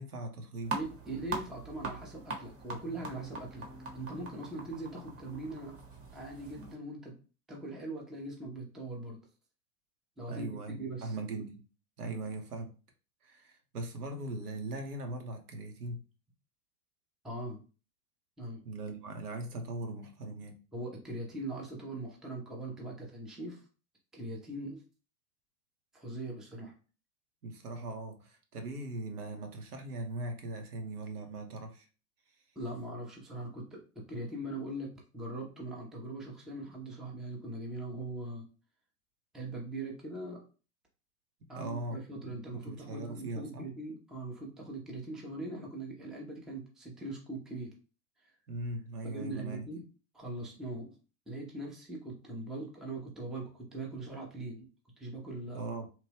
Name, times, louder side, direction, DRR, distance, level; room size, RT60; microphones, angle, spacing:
voice 1, 0.0-0.8 10.3-11.6 12.0-12.7 13.2-16.0 18.6-20.5 26.6-26.7 27.4-31.9 41.6-43.7 48.5-49.6 55.5-55.9, right 2 dB, 80° right, 0.9 m, -40 dB
sound 1, 0.6-6.7, right 3 dB, 30° right, 0.9 m, -42 dB
voice 2, 0.7-3.7 3.9-5.8 6.1-7.1 7.5-9.2 10.2-11.1 12.0-12.2 17.2-17.6 18.4-18.6 20.7-23.6 24.1-24.8 25.9-26.7 32.6-38.5 39.3-40.4 41.5-47.7 48.2-48.3 49.0-49.8 50.1-50.9 51.3-54.7 55.0-55.6, right 2 dB, ahead, 0.5 m, -41 dB
3.0 x 2.2 x 3.3 m
hypercardioid pair, 100°, 45 cm